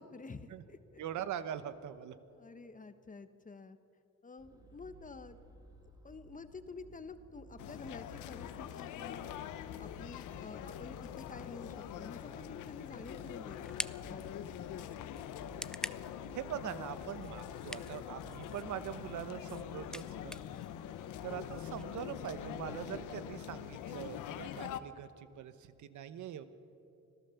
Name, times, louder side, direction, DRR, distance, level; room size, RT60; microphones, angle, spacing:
voice 1, 0.0-1.0 2.3-3.8 4.2-5.4 6.0-9.4 9.8-15.1, left 4 dB, 25° left, 11 dB, 1.2 m, -50 dB
voice 2, 1.0-2.1 16.3-20.4 21.2-26.4, right 10 dB, 75° right, 12 dB, 1.1 m, -42 dB
sound 1, 4.4-23.1, right 3 dB, 15° right, 2.0 m, -58 dB
sound 2, 7.6-24.8, left 11 dB, 90° left, 0.9 m, -44 dB
sound 3, 12.6-21.8, left 1 dB, ahead, 0.4 m, -48 dB
25.5 x 15.5 x 7.1 m, 2.8 s
cardioid pair, 90°, 30 cm